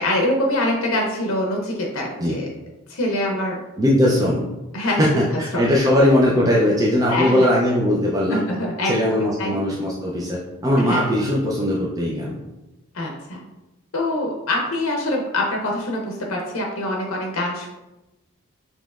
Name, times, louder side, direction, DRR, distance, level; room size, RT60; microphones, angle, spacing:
voice 1, 0.0-2.5 2.9-3.6 4.7-5.7 7.1-7.5 8.3-9.6 10.8-11.1 12.9-13.4 13.9-17.7, left 1 dB, 80° left, 0 dB, 0.7 m, -24 dB
voice 2, 3.8-4.5 4.8-8.4 8.8-12.4, left 1 dB, 15° right, -4 dB, 0.4 m, -19 dB
5.3 x 2.9 x 2.4 m, 1.0 s
head